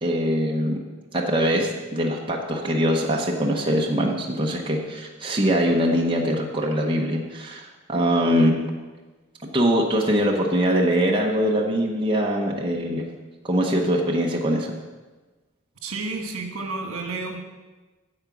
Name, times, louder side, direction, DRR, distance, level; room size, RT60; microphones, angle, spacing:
voice 1, 0.0-0.8 1.1-8.6 9.5-13.1 13.4-14.7, equal, 25° right, -1 dB, 0.9 m, -22 dB
voice 2, 15.8-17.4, right 3 dB, 75° right, 3 dB, 1.5 m, -31 dB
8.7 x 8.0 x 6.0 m, 1.3 s
head